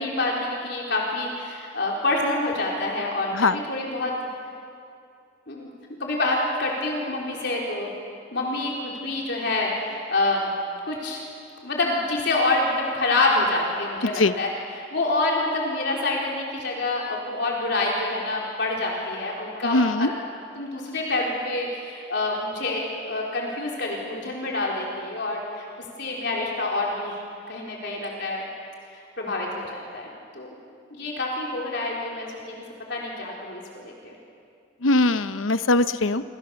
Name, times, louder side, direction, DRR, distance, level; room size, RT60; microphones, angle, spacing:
voice 1, 0.0-4.2 5.5-5.7 6.0-7.9 8.3-10.5 10.9-11.2 11.6-20.2 20.5-25.7 26.0-27.2 27.5-28.5 29.2-30.1 30.3-30.5 30.9-32.6 32.9-34.1, left 2 dB, 60° left, -2 dB, 4.2 m, -27 dB
voice 2, 19.6-20.1 34.8-36.2, left 2 dB, 90° left, 12 dB, 0.9 m, -21 dB
28.0 x 26.0 x 7.1 m, 2.4 s
head